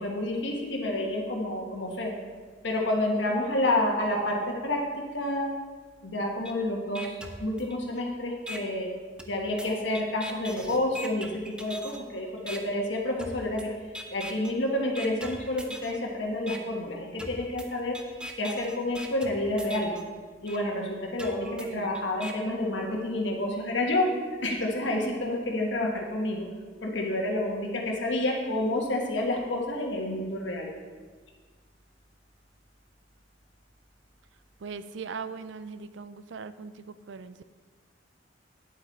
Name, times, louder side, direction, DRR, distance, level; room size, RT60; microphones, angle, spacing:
voice 1, 0.0-2.1 2.6-4.9 5.1-5.5 6.0-8.9 9.2-13.7 14.1-18.0 18.4-19.9 20.4-24.1 24.4-26.4 26.8-30.7, left 1 dB, 80° left, 0 dB, 1.4 m, -29 dB
sound 1, 6.4-6.5 6.9-8.0 8.5-8.6 9.2-12.0 12.5-12.6 13.2-13.6 13.9-14.5 14.9-16.0 16.5-16.6 17.2-20.0 20.5-20.6 21.2-22.3, equal, 5° right, 0.6 m, -41 dB
voice 2, 21.4-22.0 25.2-25.4 34.6-37.6, right 5 dB, 85° right, 13 dB, 0.5 m, -40 dB
9.2 x 8.0 x 4.1 m, 1.5 s
head